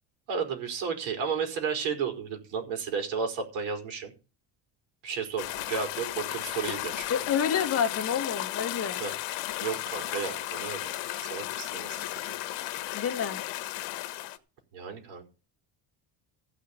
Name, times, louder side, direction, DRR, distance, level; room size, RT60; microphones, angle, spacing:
voice 1, 0.3-4.1 5.0-7.1 9.0-9.1 9.6-12.0 14.7-15.2, right 6 dB, 90° right, 4.8 m, -33 dB
sound 1, 5.4-14.4, left 15 dB, 70° left, 1.5 m, -34 dB
voice 2, 7.1-9.0 12.9-13.4, left 8 dB, 30° left, 1.8 m, -28 dB
15.0 x 6.2 x 8.5 m
cardioid pair, 160°, 44 cm